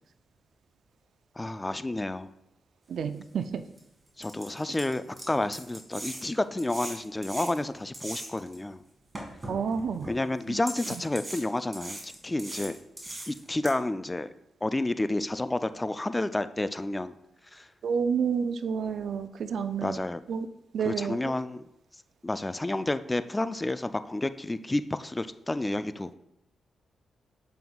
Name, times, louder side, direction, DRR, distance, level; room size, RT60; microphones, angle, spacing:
voice 1, 1.4-2.3 4.2-8.8 10.1-12.8 13.3-14.3 14.6-17.2 17.5-17.7 19.8-20.2 20.8-21.6 22.2-26.1, left 2 dB, 20° left, 12 dB, 0.3 m, -30 dB
voice 2, 2.9-3.6 9.5-10.1 10.5-10.6 10.9-11.0 17.8-20.0 20.3-20.5 20.7-21.2, right 6 dB, 75° right, 10 dB, 0.4 m, -29 dB
sound 1, 3.2-3.3 3.8-3.9 4.2-8.6 9.1-10.1 10.7-13.7, right 1 dB, 30° right, 2.0 m, -40 dB
7.6 x 5.3 x 2.3 m, 0.82 s
cardioid pair, 55°, 0 cm